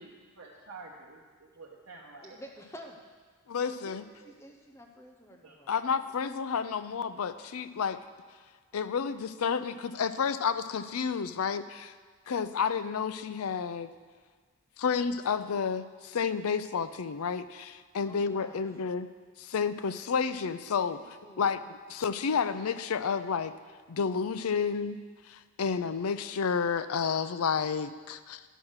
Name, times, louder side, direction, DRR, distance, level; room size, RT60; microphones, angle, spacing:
voice 1, 0.4-2.4 4.2-4.3 5.4-5.6 6.0-6.1, right 3 dB, 65° right, 1.0 m, -49 dB
voice 2, 2.2-3.0 3.6-5.7 18.0-18.6 20.9-21.5, equal, 10° left, 0.7 m, -50 dB
voice 3, 3.5-4.1 5.7-8.0 8.7-11.9 12.3-13.9 14.8-19.1 19.4-23.5 23.9-25.0 25.2-28.4, left 6 dB, 80° left, 0.5 m, -31 dB
11.0 x 6.1 x 6.4 m
head